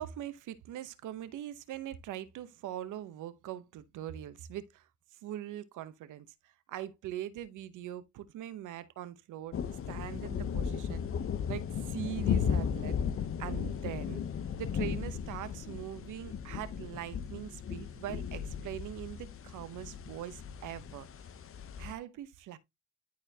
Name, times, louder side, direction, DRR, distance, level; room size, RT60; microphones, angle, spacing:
voice 1, 0.0-9.6 9.9-11.1 11.5-13.0 13.4-14.2 14.6-21.1 21.8-22.6, right 12 dB, 85° right, 0.9 m, -42 dB
sound 1, 9.5-21.9, left 7 dB, 45° left, 0.8 m, -35 dB
11.5 x 4.3 x 2.8 m
cardioid pair, 90°, 30 cm